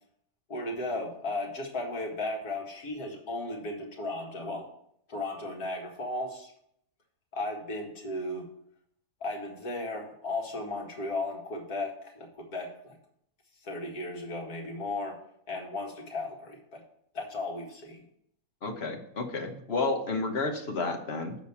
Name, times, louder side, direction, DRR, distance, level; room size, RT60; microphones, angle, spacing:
voice 1, 0.5-4.7 5.1-6.5 7.3-8.5 9.2-13.0 13.6-15.2 15.5-16.8 17.1-18.0, left 2 dB, 75° left, 0 dB, 2.3 m, -35 dB
voice 2, 18.6-21.4, left 3 dB, 45° left, 3 dB, 1.4 m, -31 dB
7.4 x 5.2 x 7.1 m, 0.70 s
omnidirectional pair, 1.6 m